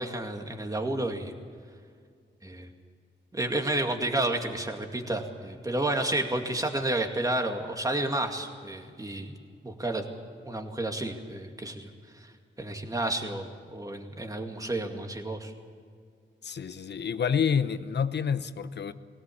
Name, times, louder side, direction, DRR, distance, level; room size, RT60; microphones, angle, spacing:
voice 1, 0.0-1.3 2.4-2.7 3.3-9.3 9.6-10.0 10.5-11.9 12.6-15.5, right 1 dB, 15° right, 2.2 m, -31 dB
voice 2, 16.4-18.9, left 7 dB, 55° left, 0.9 m, -28 dB
20.5 x 17.5 x 8.6 m
wide cardioid pair, 110°, 21 cm